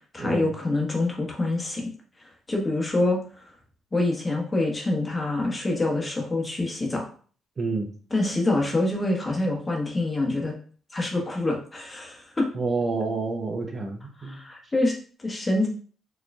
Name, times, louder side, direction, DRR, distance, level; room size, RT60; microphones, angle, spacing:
voice 1, 0.1-1.9 2.2-3.5 3.9-7.1 8.1-10.6 10.9-12.5 14.2-14.9 15.2-15.7, left 2 dB, 25° left, 0 dB, 1.1 m, -26 dB
voice 2, 7.6-7.9 12.5-14.4, right 3 dB, 40° right, 3 dB, 0.7 m, -28 dB
4.7 x 3.0 x 2.3 m, 0.43 s
cardioid pair, 90°, 0 cm